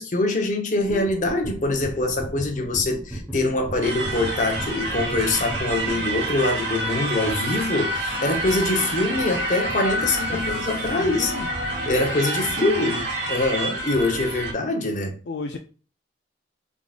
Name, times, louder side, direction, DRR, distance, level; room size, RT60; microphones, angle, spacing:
voice 1, 0.0-11.3 11.9-12.9 13.3-15.2, left 2 dB, 45° left, 0.8 m, -24 dB
sound 1, 0.8-6.0, right 2 dB, 5° right, 0.7 m, -35 dB
sound 2, 3.8-14.5, right 1 dB, 70° right, 1.1 m, -28 dB
voice 2, 10.3-11.5 12.3-13.1 15.3-15.6, left 3 dB, 70° left, 0.4 m, -35 dB
3.9 x 3.6 x 2.3 m
head